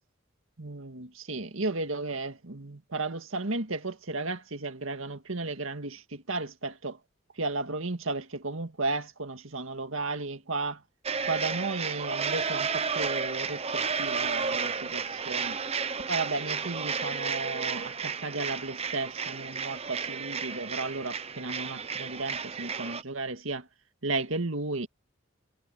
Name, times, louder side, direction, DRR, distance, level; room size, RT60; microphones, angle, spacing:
voice 1, 0.6-7.0 7.4-10.8 11.3-15.6 16.1-23.7 24.0-24.9, right 3 dB, 80° right, 1.9 m, -34 dB
sound 1, 11.0-23.0, right 5 dB, 30° right, 0.9 m, -32 dB
head